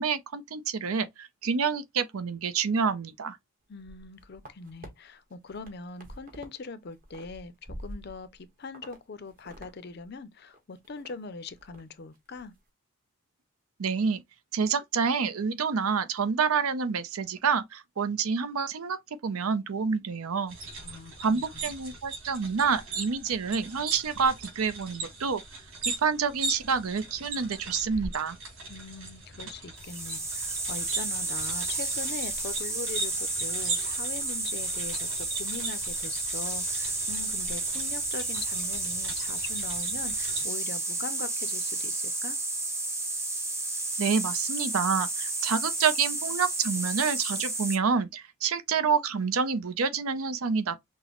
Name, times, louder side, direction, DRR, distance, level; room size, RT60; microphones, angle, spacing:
voice 1, 0.0-3.4 13.8-14.2 14.5-20.6 21.2-25.4 25.9-28.4 44.0-50.8, right 5 dB, 80° right, 0.6 m, -28 dB
voice 2, 3.7-12.5 20.8-21.7 28.7-42.4, left 4 dB, 45° left, 0.5 m, -41 dB
sound 1, 3.7-4.9 5.3-6.6 6.8-8.4 8.7-9.0 9.3-9.7 10.0-10.1 10.5-11.1 11.5-11.8 12.2-12.4, right 1 dB, 40° right, 1.2 m, -46 dB
sound 2, 20.5-40.4, right 3 dB, 60° right, 2.9 m, -39 dB
sound 3, 29.8-47.8, right 2 dB, 10° right, 0.8 m, -31 dB
6.0 x 2.1 x 2.9 m
head